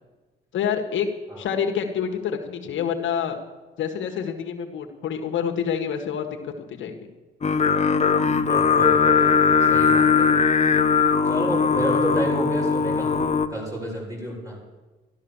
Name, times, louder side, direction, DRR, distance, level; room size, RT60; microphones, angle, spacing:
voice 1, 0.5-1.1 1.4-3.4 3.8-6.9, left 7 dB, 75° left, 4 dB, 1.7 m, -27 dB
Singing, 7.4-13.5, left 5 dB, 35° left, 1.0 m, -19 dB
voice 2, 8.5-9.2 9.7-10.4 11.2-13.1 13.5-14.6, right 1 dB, 15° right, -2 dB, 6.7 m, -30 dB
13.0 x 12.5 x 7.2 m, 1.2 s
cardioid pair, 90°, 20 cm